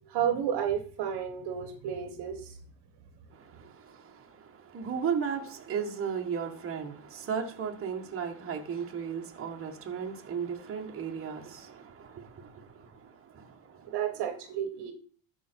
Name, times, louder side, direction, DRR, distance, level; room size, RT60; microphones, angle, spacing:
voice 1, 0.0-2.6 13.9-14.9, right 9 dB, 55° right, 1.5 m, -32 dB
voice 2, 3.3-13.9, right 7 dB, 25° right, 1.7 m, -36 dB
13.5 x 5.1 x 4.6 m
supercardioid pair, 110°, 49 cm